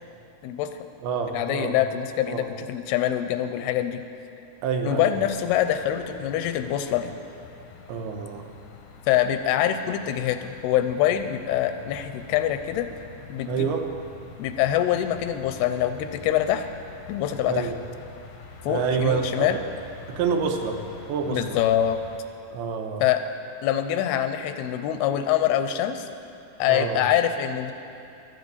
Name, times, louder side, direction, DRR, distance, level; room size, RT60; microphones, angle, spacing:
voice 1, 0.4-0.9 1.3-4.0 4.8-7.1 9.1-12.9 13.3-13.7 14.4-16.6 17.1-17.7 18.7-19.6 21.3-22.0 23.0-23.2 23.6-26.1 26.6-27.7, left 11 dB, 85° left, 9 dB, 2.6 m, -24 dB
voice 2, 1.0-1.8 2.3-2.5 4.6-5.2 7.9-8.4 13.5-13.9 17.5-17.8 18.7-19.7 20.1-20.8 21.1-21.6 22.5-23.0 26.7-27.0, right 6 dB, 80° right, 4 dB, 2.9 m, -27 dB
sound 1, 5.1-22.2, left 4 dB, 70° left, 1.7 m, -46 dB
12.0 x 9.5 x 8.1 m, 2.6 s
omnidirectional pair, 4.5 m